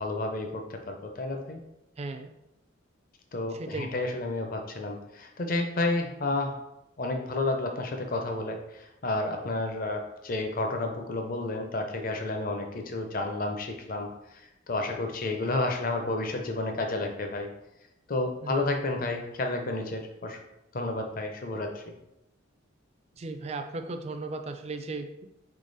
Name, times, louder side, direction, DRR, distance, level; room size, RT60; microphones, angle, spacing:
voice 1, 0.0-1.6 3.3-6.6 7.0-17.5 18.1-20.4 20.7-21.9, left 2 dB, 45° left, 4 dB, 0.6 m, -31 dB
voice 2, 2.0-2.3 3.5-4.0 18.4-18.6 23.1-25.3, right 3 dB, 30° right, 7 dB, 0.3 m, -36 dB
3.8 x 3.2 x 3.9 m, 0.88 s
head